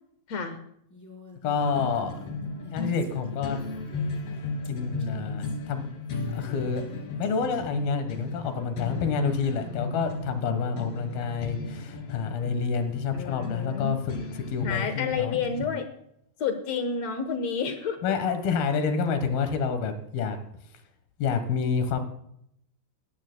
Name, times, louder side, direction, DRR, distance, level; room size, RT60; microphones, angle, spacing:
voice 1, 0.3-0.6 13.1-13.9 14.6-15.9 16.4-18.0, left 6 dB, 60° left, 7 dB, 1.9 m, -30 dB
Female speech woman speaking, 0.9-7.9, left 2 dB, 5° left, 3.4 m, -49 dB
voice 2, 1.4-2.1 2.7-3.6 4.7-5.9 6.3-6.8 7.2-15.4 18.0-20.4 21.2-22.0, left 5 dB, 85° left, 8 dB, 3.2 m, -28 dB
sound 1, 1.6-15.7, left 3 dB, 45° left, 3.4 m, -35 dB
20.5 x 14.5 x 2.2 m, 0.73 s
omnidirectional pair, 4.2 m